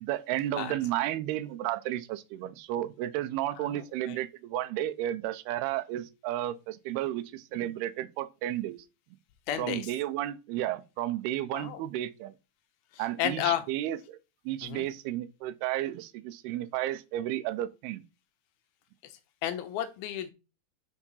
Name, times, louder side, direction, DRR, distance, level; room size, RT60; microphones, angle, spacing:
voice 1, 0.0-8.8 9.6-12.3 13.0-14.2 14.5-18.0, right 13 dB, 85° right, 2.7 m, -33 dB
voice 2, 3.6-4.2 9.5-9.9 11.5-11.8 12.9-13.6 14.6-14.9 19.4-20.3, left 11 dB, 80° left, 2.7 m, -32 dB
6.5 x 4.8 x 5.5 m
omnidirectional pair, 4.5 m